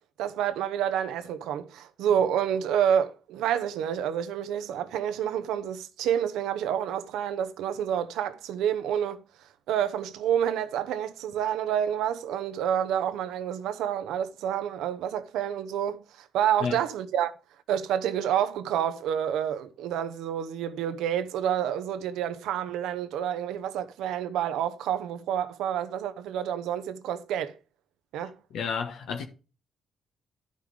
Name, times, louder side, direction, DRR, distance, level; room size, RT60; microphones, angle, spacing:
voice 1, 0.2-9.2 9.7-17.3 17.7-27.6 28.1-28.3, right 9 dB, 90° right, 0.9 m, -28 dB
voice 2, 28.5-29.3, left 6 dB, 80° left, 1.3 m, -31 dB
11.5 x 5.6 x 4.9 m
cardioid pair, 85°, 0 cm